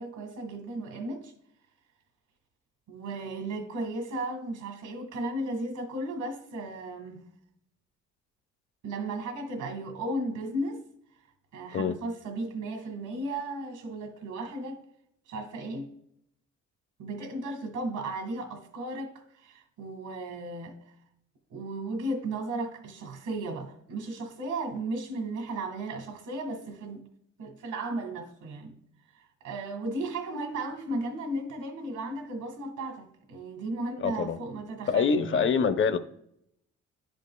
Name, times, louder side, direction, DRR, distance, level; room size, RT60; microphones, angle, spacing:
voice 1, 0.0-1.3 2.9-7.2 8.8-10.8 11.5-14.8 15.3-15.9 17.0-20.7 21.5-27.0 27.4-28.7 29.4-35.5, right 2 dB, 75° right, 1.5 m, -35 dB
voice 2, 34.0-34.4 34.9-36.0, left 6 dB, 40° left, 0.6 m, -25 dB
11.0 x 5.2 x 2.2 m
cardioid pair, 90°, 30 cm